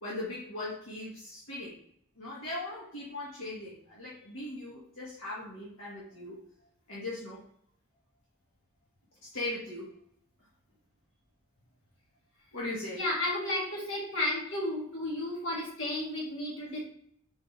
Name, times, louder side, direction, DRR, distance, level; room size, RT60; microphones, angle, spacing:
voice 1, 0.0-1.8 2.2-6.4 6.9-7.4 9.3-9.9 12.5-13.0, left 2 dB, 80° left, -7 dB, 1.3 m, -39 dB
voice 2, 12.9-16.8, left 1 dB, 65° left, -4 dB, 1.7 m, -33 dB
3.8 x 3.2 x 3.6 m, 0.66 s
head